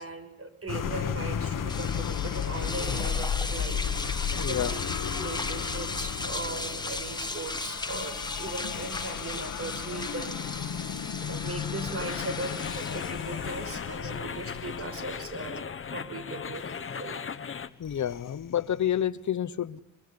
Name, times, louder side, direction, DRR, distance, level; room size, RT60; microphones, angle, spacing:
voice 1, 0.0-3.8 4.4-10.4 11.2-15.6 15.9-17.2, right 3 dB, 45° right, 8 dB, 5.5 m, -39 dB
sound 1, 0.7-17.0 17.8-19.0, left 8 dB, 80° left, 1.4 m, -34 dB
sound 2, 1.7-15.2, left 2 dB, 15° left, 1.7 m, -37 dB
voice 2, 4.3-4.8 14.0-14.1 17.8-19.8, left 10 dB, 65° left, 15 dB, 1.0 m, -29 dB
sound 3, 12.0-17.7, left 6 dB, 40° left, 1.2 m, -37 dB
24.5 x 24.5 x 9.7 m, 0.86 s
wide cardioid pair, 110°, 32 cm